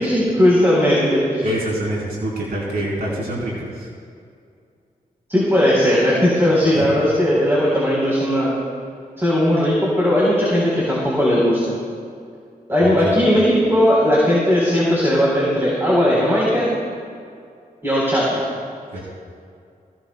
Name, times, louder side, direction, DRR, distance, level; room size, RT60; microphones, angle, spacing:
voice 1, 0.0-1.4 5.3-8.5 9.2-11.8 12.7-16.7 17.8-18.4, equal, 15° right, -6 dB, 3.8 m, -17 dB
voice 2, 1.4-3.9 6.7-6.8 12.8-13.2 18.9-19.0, right 1 dB, 90° right, -4 dB, 3.4 m, -26 dB
18.0 x 16.5 x 2.2 m, 2.3 s
cardioid pair, 70°, 16 cm